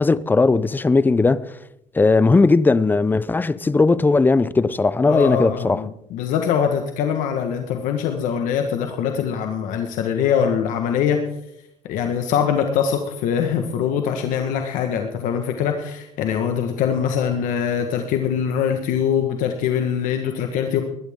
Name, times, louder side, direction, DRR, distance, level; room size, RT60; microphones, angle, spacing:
voice 1, 0.0-1.6 1.9-5.8, left 3 dB, 15° left, 0.5 m, -17 dB
voice 2, 5.0-11.2 11.8-20.8, left 8 dB, 80° left, 1.5 m, -23 dB
20.0 x 13.0 x 3.7 m
cardioid pair, 120°, 13 cm